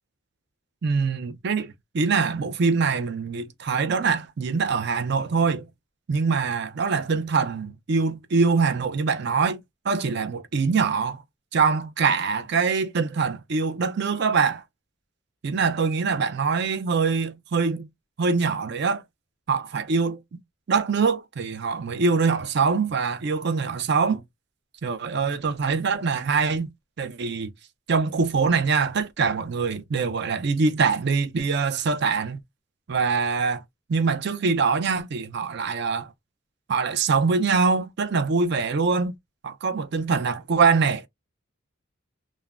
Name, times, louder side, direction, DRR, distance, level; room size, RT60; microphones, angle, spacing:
voice 1, 0.8-5.7 6.1-11.2 11.5-14.6 15.4-17.9 18.2-19.0 19.5-20.2 20.7-24.2 24.8-26.7 27.0-27.5 27.9-32.4 32.9-33.6 33.9-36.1 36.7-39.1 39.4-41.0, right 5 dB, 50° right, 0.4 m, -24 dB
3.5 x 2.1 x 2.3 m
head